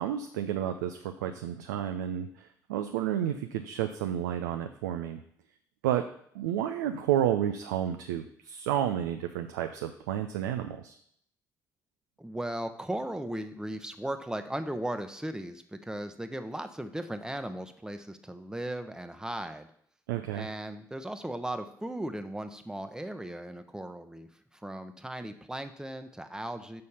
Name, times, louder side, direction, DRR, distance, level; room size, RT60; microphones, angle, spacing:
voice 1, 0.0-5.2 5.8-6.1 6.3-10.9 20.1-20.5, right 10 dB, 85° right, 6 dB, 0.4 m, -31 dB
voice 2, 12.2-19.7 20.3-26.8, right 1 dB, 5° right, 8 dB, 0.9 m, -37 dB
6.6 x 5.4 x 5.6 m, 0.65 s
hypercardioid pair, 40°, 9 cm